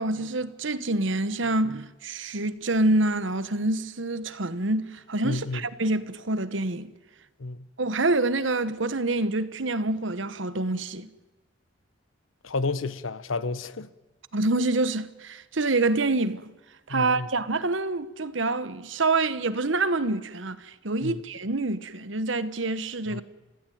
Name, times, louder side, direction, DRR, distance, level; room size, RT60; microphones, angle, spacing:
voice 1, 0.0-6.9 7.8-11.1 14.3-16.5 16.9-23.2, right 2 dB, 70° right, 1.3 m, -26 dB
voice 2, 5.2-5.6 7.4-7.7 12.4-13.9 16.9-17.3 21.0-21.2 23.1-23.2, left 3 dB, 90° left, 1.0 m, -31 dB
30.0 x 15.5 x 9.4 m
head